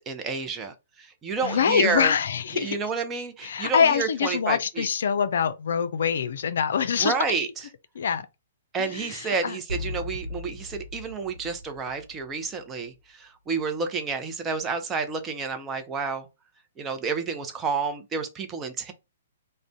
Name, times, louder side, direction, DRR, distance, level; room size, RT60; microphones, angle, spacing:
voice 1, 0.0-2.1 2.5-4.9 7.0-7.5 8.7-16.3 16.8-18.9, right 5 dB, 20° right, 0.5 m, -30 dB
voice 2, 1.4-2.8 3.4-7.1 8.0-8.3 8.8-9.6, left 7 dB, 65° left, 0.3 m, -24 dB
sound 1, 9.7-12.6, left 3 dB, 70° right, 0.7 m, -37 dB
2.5 x 2.1 x 3.4 m
figure-of-eight pair, 125°, 0 cm